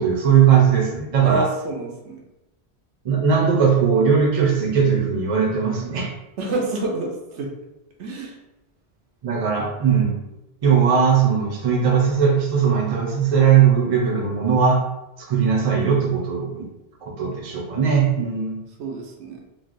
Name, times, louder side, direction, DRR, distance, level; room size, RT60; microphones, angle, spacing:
voice 1, 0.0-1.5 3.0-6.1 9.2-10.2 10.6-14.8 15.2-16.7 17.0-18.6, right 7 dB, 40° right, -1 dB, 0.6 m, -19 dB
voice 2, 1.2-2.2 6.4-7.5 8.0-8.4 18.8-19.4, right 2 dB, 80° right, 0 dB, 0.9 m, -27 dB
3.2 x 2.4 x 2.5 m, 0.92 s
omnidirectional pair, 1.1 m